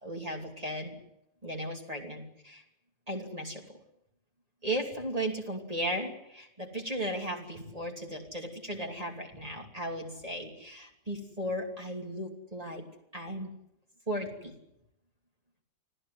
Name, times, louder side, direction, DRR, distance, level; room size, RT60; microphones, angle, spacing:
voice 1, 0.0-1.0 1.4-2.6 3.1-3.6 4.6-12.8 13.1-13.5 14.1-14.5, right 1 dB, 20° right, 1 dB, 3.1 m, -36 dB
25.0 x 16.0 x 9.5 m, 0.82 s
omnidirectional pair, 1.7 m